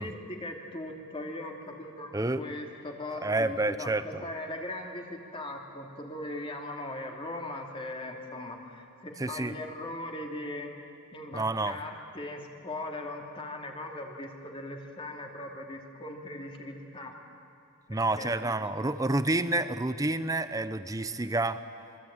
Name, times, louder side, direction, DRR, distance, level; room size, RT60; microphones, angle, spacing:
voice 1, 0.0-10.8 11.1-17.1 17.9-18.5, left 1 dB, 25° left, 1 dB, 2.7 m, -39 dB
voice 2, 2.1-2.4 3.2-4.2 9.2-9.6 11.3-11.8 17.9-21.6, right 2 dB, 15° right, 12 dB, 0.7 m, -29 dB
26.5 x 23.5 x 8.9 m, 2.5 s
head